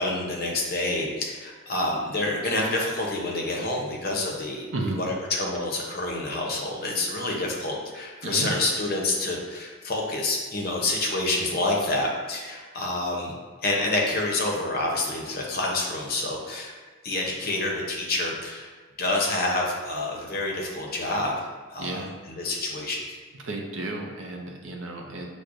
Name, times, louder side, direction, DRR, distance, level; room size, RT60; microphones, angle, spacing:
voice 1, 0.0-4.6 4.9-13.3 13.6-16.7 17.0-18.7 19.0-23.2, left 2 dB, 45° left, -1 dB, 0.6 m, -28 dB
voice 2, 8.2-8.5 21.8-22.1 23.4-25.3, right 2 dB, 60° right, 1 dB, 0.5 m, -32 dB
6.0 x 2.1 x 2.5 m, 1.5 s
head